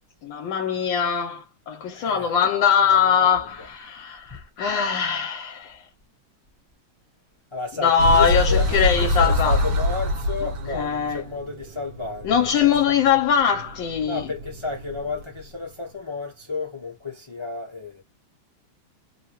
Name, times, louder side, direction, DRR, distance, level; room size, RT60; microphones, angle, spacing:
voice 1, 0.2-5.9 7.8-9.6 10.7-11.2 12.2-14.3, left 7 dB, 75° left, 1.3 m, -22 dB
voice 2, 1.9-2.4 2.8-3.5 7.5-12.9 14.0-18.0, left 4 dB, 30° left, 0.5 m, -32 dB
sound 1, 8.0-15.4, left 1 dB, 75° right, 1.5 m, -26 dB
3.4 x 2.2 x 2.9 m
omnidirectional pair, 2.2 m